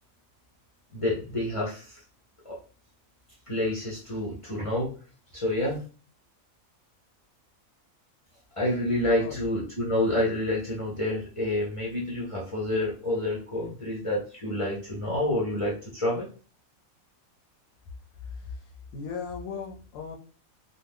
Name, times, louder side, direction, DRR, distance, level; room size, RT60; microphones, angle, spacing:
voice 1, 0.9-2.0 2.4-2.6 3.5-4.9 5.3-5.8 8.6-16.3, left 1 dB, 35° left, -5 dB, 0.5 m, -28 dB
voice 2, 18.1-20.2, left 5 dB, 80° left, 1 dB, 1.0 m, -38 dB
2.6 x 2.2 x 3.4 m, 0.39 s
omnidirectional pair, 1.5 m